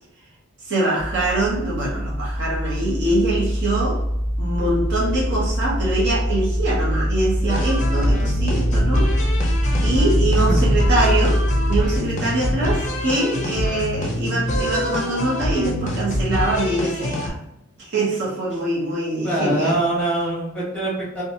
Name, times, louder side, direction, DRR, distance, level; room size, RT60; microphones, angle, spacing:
voice 1, 0.6-4.1 4.4-9.1 9.8-17.4 17.8-19.8, right 2 dB, 55° right, -6 dB, 0.9 m, -23 dB
sound 1, 1.0-12.0, equal, 70° right, 1.2 m, -22 dB
sound 2, 7.5-17.3, left 1 dB, 35° left, 0.5 m, -25 dB
voice 2, 10.4-10.7 19.2-21.2, right 1 dB, 5° left, -8 dB, 1.2 m, -23 dB
2.8 x 2.3 x 2.6 m, 0.86 s
head